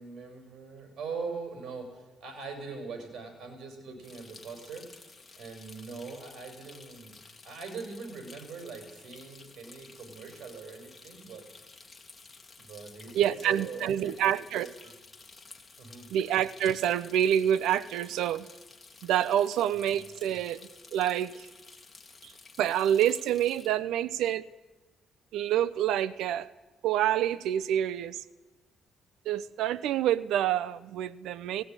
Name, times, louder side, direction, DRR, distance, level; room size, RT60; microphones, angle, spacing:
voice 1, 0.0-4.9 5.3-7.2 7.4-11.5 12.6-14.2 14.6-14.7 15.8-16.1, right 4 dB, 65° right, 5 dB, 6.8 m, -42 dB
sound 1, 4.0-23.7, left 4 dB, 25° left, 3.1 m, -52 dB
voice 2, 13.1-14.7 16.1-18.5 19.0-20.6 20.9-21.5 22.2-22.3 22.6-24.4 25.3-26.5 26.8-28.2 29.2-31.6, right 10 dB, 85° right, 17 dB, 0.8 m, -27 dB
19.0 x 16.5 x 9.8 m, 1.1 s
cardioid pair, 90°, 0 cm